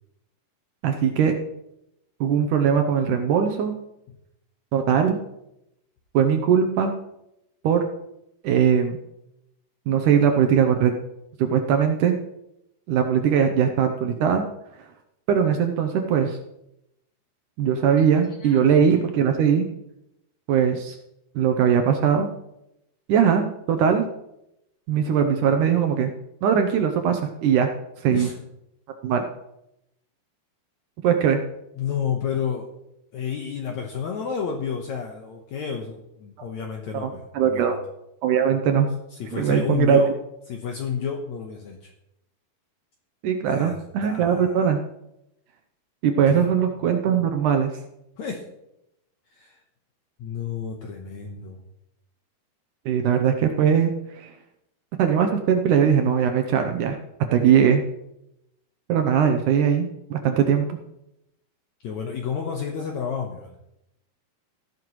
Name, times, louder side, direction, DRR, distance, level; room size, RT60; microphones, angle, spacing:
voice 1, 0.8-1.4 2.2-3.8 4.7-5.2 6.1-6.9 7.6-7.8 8.4-9.0 9.9-10.9 11.4-12.2 12.9-14.4 15.3-16.4 17.6-19.7 20.5-21.0 21.4-22.3 23.1-24.1 24.9-26.1 26.4-27.7 28.0-28.3 29.0-29.3 31.0-31.4 36.9-37.8 38.2-38.9 39.3-40.0 43.2-44.8 46.0-47.7 52.9-54.3 55.0-57.0 57.3-57.8 58.9-60.8, right 8 dB, 75° right, 6 dB, 1.9 m, -20 dB
voice 2, 31.8-32.7 33.1-37.8 39.1-40.1 40.5-41.9 43.5-44.7 46.3-46.5 48.2-48.4 49.3-49.6 50.2-51.6 61.8-63.5, left 7 dB, 70° left, 1 dB, 1.9 m, -31 dB
14.5 x 11.0 x 3.1 m, 0.84 s
omnidirectional pair, 4.4 m